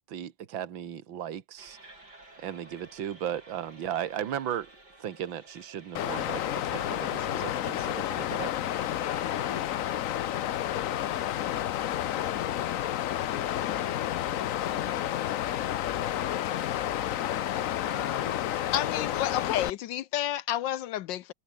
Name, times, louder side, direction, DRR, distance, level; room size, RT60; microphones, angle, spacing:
voice 1, 0.1-1.8 2.4-4.7 5.0-8.5 8.8-9.0, right 10 dB, 65° right, 2.2 m, -36 dB
sound 1, 1.6-11.2, right 2 dB, 50° right, 8.4 m, -53 dB
Water, 5.9-19.7, left 12 dB, 85° left, 0.7 m, -30 dB
voice 2, 8.9-11.2 16.4-18.6 18.9-19.2, left 7 dB, 45° left, 2.0 m, -48 dB
voice 3, 18.7-21.3, left 12 dB, 70° left, 1.2 m, -30 dB
omnidirectional pair, 2.3 m